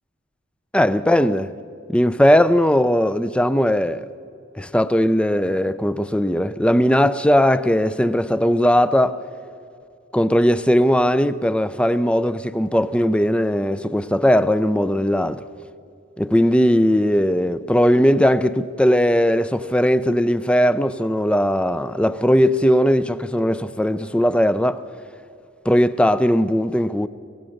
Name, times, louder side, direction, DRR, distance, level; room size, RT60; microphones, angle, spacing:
voice 1, 0.7-1.5 1.9-4.0 4.6-9.2 10.1-15.4 16.2-24.8 25.6-27.1, equal, 5° left, 0.5 m, -18 dB
25.0 x 18.0 x 6.5 m
head